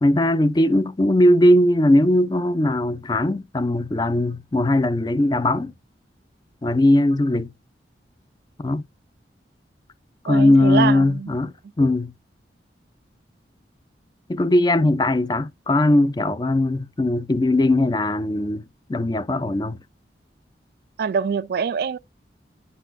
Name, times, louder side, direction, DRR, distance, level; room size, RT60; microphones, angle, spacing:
voice 1, 0.0-5.7 6.6-7.5 8.6-8.8 10.2-12.1 14.3-18.6 18.9-19.8, left 1 dB, 25° left, 0.4 m, -19 dB
voice 2, 10.3-11.3 21.0-22.0, right 6 dB, 60° right, 0.3 m, -24 dB
9.9 x 4.1 x 2.5 m
head